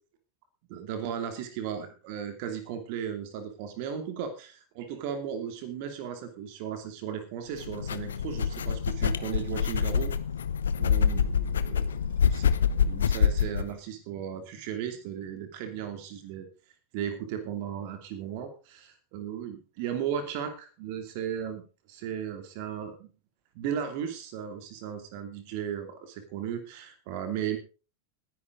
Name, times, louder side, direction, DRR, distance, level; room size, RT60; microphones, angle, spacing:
voice 1, 0.7-10.2 10.8-11.9 12.3-12.5 12.8-16.5 16.9-21.6 21.9-23.1 23.5-27.6, right 8 dB, 45° right, 8 dB, 2.8 m, -36 dB
sound 1, 7.6-13.7, left 7 dB, 65° left, 0.9 m, -26 dB
20.0 x 10.5 x 3.9 m, 0.34 s
figure-of-eight pair, 90°, 0 cm